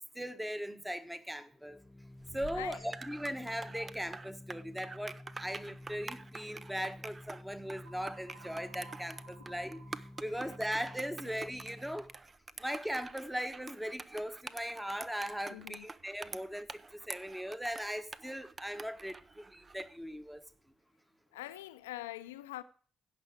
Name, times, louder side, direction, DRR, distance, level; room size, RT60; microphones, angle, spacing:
voice 1, 0.1-1.8 2.3-12.1 12.6-16.7 17.1-20.4, equal, 5° right, 1.2 m, -39 dB
Organ, 1.5-12.3, left 1 dB, 15° left, 1.2 m, -51 dB
sound 1, 2.2-20.0, right 4 dB, 35° right, 0.6 m, -47 dB
voice 2, 2.5-2.9 10.3-10.6 15.5-15.9 21.3-22.6, left 15 dB, 80° left, 0.5 m, -44 dB
sound 2, 7.8-11.7, right 3 dB, 70° right, 4.2 m, -58 dB
16.5 x 5.9 x 4.9 m
figure-of-eight pair, 40°, 0 cm